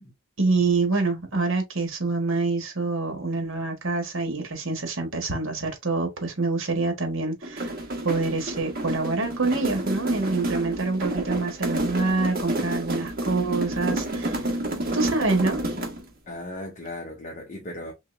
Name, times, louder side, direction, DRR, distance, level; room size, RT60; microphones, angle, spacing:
voice 1, 0.4-7.7 8.0-14.4 14.9-15.6, right 3 dB, 65° right, 1.4 m, -26 dB
sound 1, 7.4-16.1, right 1 dB, 45° right, 1.3 m, -29 dB
voice 2, 16.3-17.9, left 1 dB, 35° left, 0.8 m, -37 dB
3.9 x 3.2 x 2.6 m
head